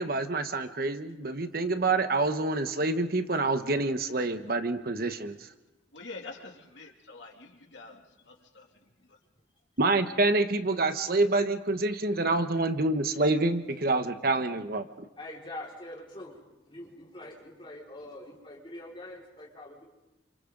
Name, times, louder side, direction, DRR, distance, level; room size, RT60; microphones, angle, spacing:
voice 1, 0.0-5.3 9.8-14.9, right 2 dB, 55° right, 9 dB, 1.1 m, -27 dB
voice 2, 5.9-7.3 7.7-8.0 8.3-8.7, left 3 dB, 80° left, 1 dB, 2.7 m, -45 dB
voice 3, 15.2-16.4 16.7-19.9, left 1 dB, 25° left, -4 dB, 4.9 m, -44 dB
29.5 x 27.5 x 3.9 m, 0.99 s
head